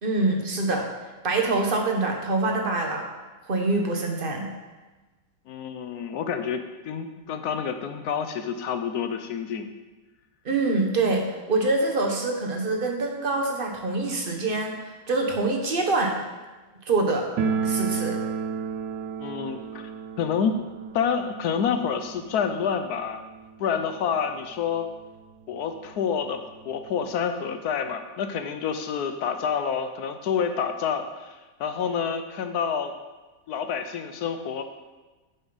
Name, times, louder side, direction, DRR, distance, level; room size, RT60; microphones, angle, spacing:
voice 1, 0.0-0.9 1.2-3.1 3.5-4.5 10.4-14.7 15.1-16.2 16.9-17.3 17.6-18.2, right 3 dB, 35° right, 2 dB, 1.2 m, -25 dB
voice 2, 5.5-9.7 19.2-19.9 20.2-20.5 20.9-23.2 23.6-24.9 25.5-32.9 33.5-34.6, left 7 dB, 70° left, 8 dB, 1.1 m, -28 dB
sound 1, 17.4-24.1 24.3-24.4 24.7-24.8 25.5-25.6 25.9-27.1, right 6 dB, 70° right, 1.0 m, -32 dB
9.8 x 7.2 x 4.0 m, 1.2 s
omnidirectional pair, 2.0 m